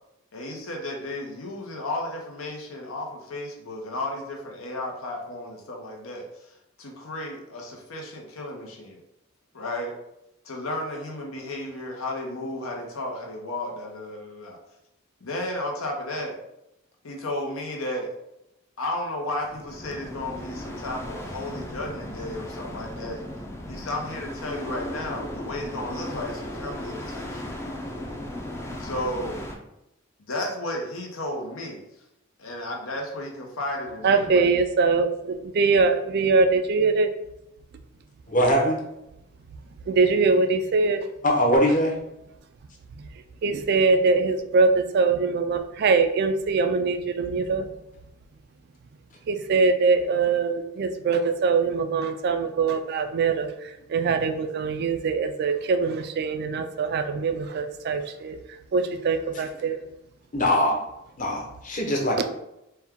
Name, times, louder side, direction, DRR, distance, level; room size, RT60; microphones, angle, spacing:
voice 1, 0.3-6.2 6.8-9.0 9.5-9.9 10.4-14.6 15.2-16.3 17.0-18.1 18.8-23.2 23.7-27.6 28.8-29.4 30.2-31.8 32.4-34.4, left 1 dB, 90° left, 1 dB, 0.9 m, -33 dB
sound 1, 19.4-29.6, left 1 dB, 15° left, 0.4 m, -36 dB
voice 2, 34.0-37.1 39.9-41.1 43.4-47.7 49.3-58.4 58.7-59.8, right 4 dB, 50° right, 8 dB, 0.3 m, -23 dB
voice 3, 38.3-38.8 41.2-42.0 60.3-60.7 61.2-62.3, equal, 40° left, 0 dB, 0.8 m, -22 dB
4.4 x 2.3 x 3.6 m, 0.86 s
head